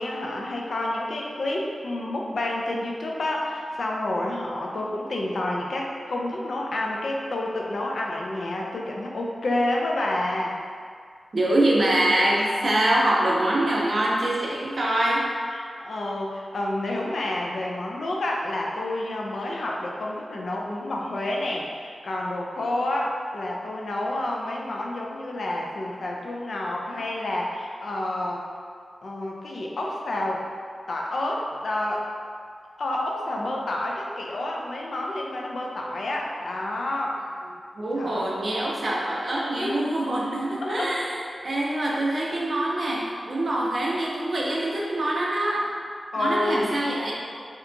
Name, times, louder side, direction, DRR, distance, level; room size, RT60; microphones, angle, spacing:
voice 1, 0.0-10.6 15.5-28.5 29.0-30.4 30.9-32.1 32.8-37.2 38.0-38.4 39.6-39.8 40.4-41.2 46.1-46.7, left 1 dB, 75° left, -1 dB, 0.3 m, -29 dB
voice 2, 11.3-15.4 37.8-41.2 41.4-45.7 46.2-47.1, right 1 dB, 50° right, -4 dB, 0.4 m, -24 dB
2.8 x 2.2 x 2.5 m, 2.1 s
wide cardioid pair, 120°, 0 cm